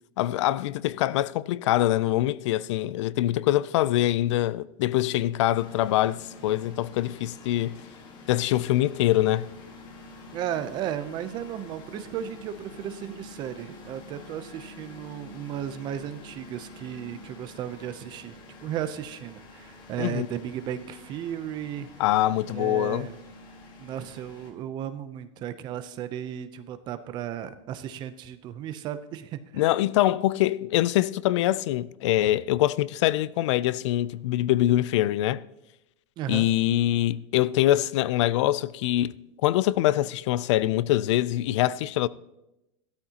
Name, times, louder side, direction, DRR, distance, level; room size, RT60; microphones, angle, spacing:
voice 1, 0.2-7.8 8.3-9.5 20.0-20.3 22.0-23.1 29.6-35.4 36.3-39.1 39.4-42.1, left 14 dB, 65° left, 0.4 m, -24 dB
sound 1, 5.5-24.5, left 2 dB, 25° left, 1.5 m, -47 dB
voice 2, 10.3-18.3 18.6-21.9 22.5-23.2 23.8-29.6 36.2-36.5, right 10 dB, 25° right, 0.6 m, -35 dB
14.5 x 12.5 x 2.9 m
supercardioid pair, 170°, 16 cm